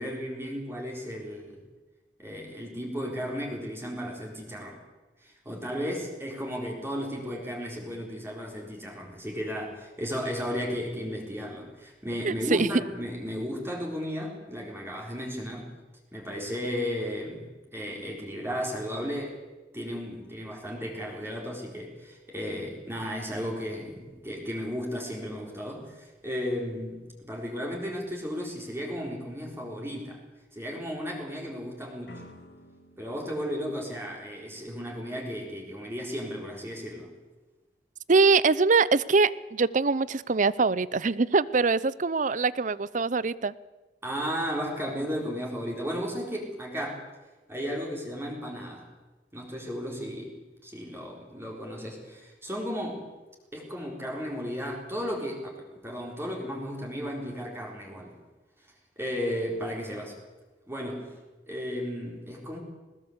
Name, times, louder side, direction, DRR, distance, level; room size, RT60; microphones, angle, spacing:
voice 1, 0.0-1.6 2.2-4.8 5.2-15.7 16.1-19.4 19.7-30.2 30.5-32.2 33.0-37.1 44.0-47.0 47.5-48.9 49.3-50.3 50.6-53.1 53.5-58.2 59.0-60.2 60.7-61.1 61.5-62.6, equal, 15° right, -1 dB, 4.3 m, -34 dB
voice 2, 12.2-12.7 38.1-43.5, right 4 dB, 45° right, 19 dB, 0.7 m, -23 dB
sound 1, 32.1-35.0, left 1 dB, 70° left, 3.2 m, -53 dB
20.0 x 20.0 x 8.1 m, 1.2 s
head